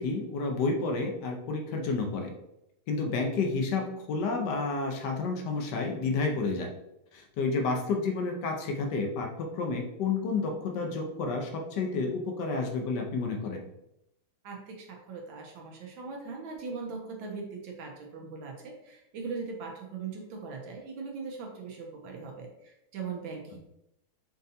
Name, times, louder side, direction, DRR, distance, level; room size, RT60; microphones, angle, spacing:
voice 1, 0.0-2.3 2.9-6.7 7.1-13.6, left 3 dB, 65° left, 2 dB, 1.1 m, -30 dB
voice 2, 14.4-23.6, right 4 dB, 75° right, 1 dB, 1.4 m, -40 dB
5.5 x 2.6 x 2.7 m, 0.83 s
omnidirectional pair, 2.3 m